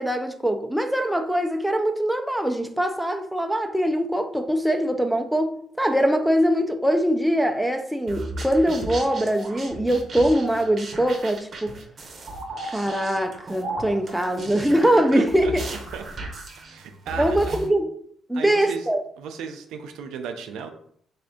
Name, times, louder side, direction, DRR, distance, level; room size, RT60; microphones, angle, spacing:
voice 1, 0.0-5.5 5.8-11.8 12.7-15.6 17.2-17.9 18.3-19.0, equal, 5° right, 0.5 m, -22 dB
sound 1, 8.1-17.7, right 1 dB, 50° right, 0.8 m, -35 dB
voice 2, 15.2-15.5 15.9-16.0 16.6-17.5 18.3-18.9 19.2-20.7, right 6 dB, 85° right, 0.4 m, -35 dB
3.5 x 2.4 x 3.5 m
supercardioid pair, 70°, 0 cm